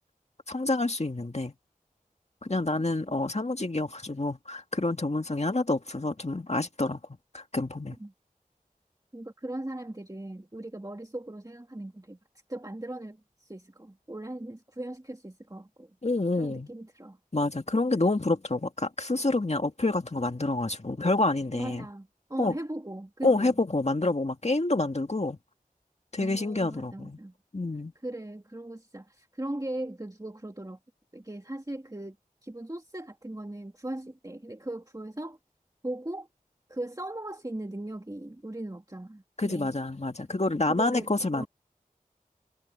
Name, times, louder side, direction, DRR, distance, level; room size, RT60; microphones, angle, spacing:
voice 1, 0.5-1.5 2.4-7.0 7.3-8.0 16.0-16.7 17.3-21.9 22.4-22.6 23.2-25.4 26.1-27.2 27.5-27.9 39.4-41.5, left 2 dB, 50° left, 1.9 m, -28 dB
voice 2, 9.1-12.2 12.5-15.9 16.4-17.2 21.5-23.6 26.2-27.3 28.0-30.8 31.1-32.2 32.4-35.4 35.8-36.3 36.7-39.7 40.6-41.5, right 1 dB, 25° right, 2.0 m, -39 dB
wide cardioid pair, 40°, 15 cm